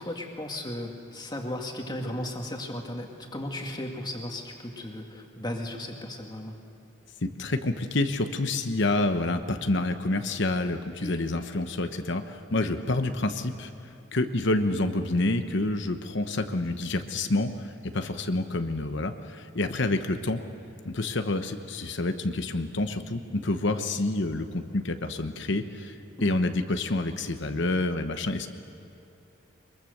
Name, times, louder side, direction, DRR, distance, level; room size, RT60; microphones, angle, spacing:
voice 1, 0.0-6.5 11.0-11.2 23.7-23.8 26.2-26.4, left 1 dB, 20° left, 2 dB, 2.1 m, -35 dB
voice 2, 7.2-13.7 14.1-20.4 20.8-25.9 26.2-28.5, left 2 dB, 55° left, 7 dB, 1.0 m, -28 dB
23.5 x 22.5 x 6.6 m, 2.9 s
head